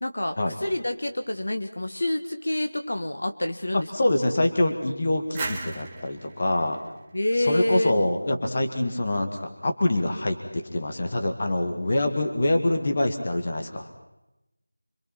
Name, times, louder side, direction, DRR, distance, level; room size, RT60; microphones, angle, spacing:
voice 1, 0.0-4.1 7.1-7.9, left 1 dB, 60° left, 6 dB, 1.7 m, -27 dB
voice 2, 3.7-6.8 7.4-13.9, left 1 dB, 25° left, 5 dB, 1.9 m, -25 dB
sound 1, 5.3-8.1, right 3 dB, 10° right, 1.0 m, -37 dB
26.5 x 24.5 x 6.0 m, 0.92 s
figure-of-eight pair, 180°, 0 cm